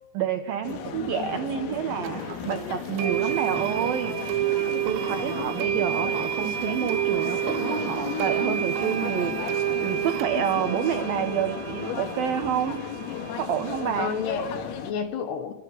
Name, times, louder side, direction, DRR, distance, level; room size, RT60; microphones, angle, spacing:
voice 1, 0.1-4.5 4.8-12.9 13.3-14.1, right 9 dB, 70° right, 8 dB, 2.3 m, -29 dB
sound 1, 0.6-14.9, left 7 dB, 85° left, 4.8 m, -34 dB
sound 2, 2.0-2.1 3.0-14.6, right 12 dB, 90° right, 4.2 m, -30 dB
voice 2, 5.0-5.6 14.0-15.5, left 7 dB, 65° left, 10 dB, 3.0 m, -32 dB
30.0 x 24.5 x 7.3 m, 1.2 s
omnidirectional pair, 5.9 m